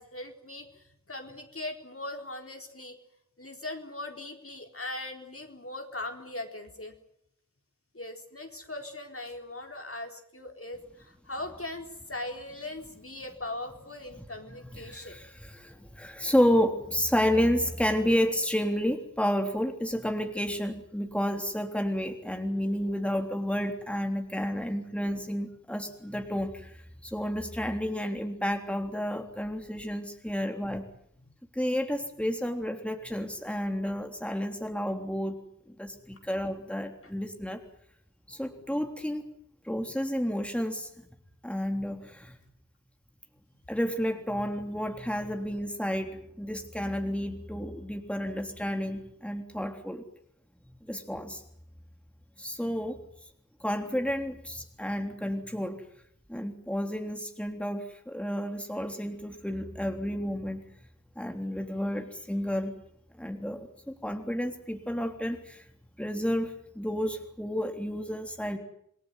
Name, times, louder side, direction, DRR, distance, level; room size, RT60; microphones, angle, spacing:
voice 1, 0.0-3.0 3.4-6.9 7.9-15.2, left 2 dB, 50° left, 3 dB, 4.2 m, -40 dB
voice 2, 14.7-26.8 27.0-30.8 31.5-37.6 38.3-39.2 39.6-40.9 41.4-42.4 43.7-50.0 50.9-51.4 52.4-53.0 53.6-55.8 56.3-60.6 61.2-62.7 63.2-65.6 66.0-68.6, equal, 5° left, 4 dB, 3.4 m, -31 dB
27.5 x 19.5 x 9.3 m, 0.72 s
wide cardioid pair, 45°, 29 cm